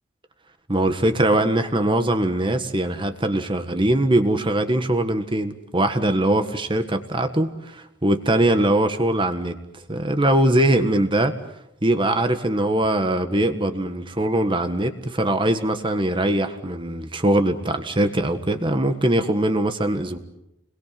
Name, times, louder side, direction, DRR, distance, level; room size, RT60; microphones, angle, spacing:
voice 1, 0.7-9.6 9.9-11.3 11.8-20.2, right 1 dB, 25° right, 8 dB, 1.6 m, -21 dB
29.5 x 22.0 x 7.7 m, 0.83 s
head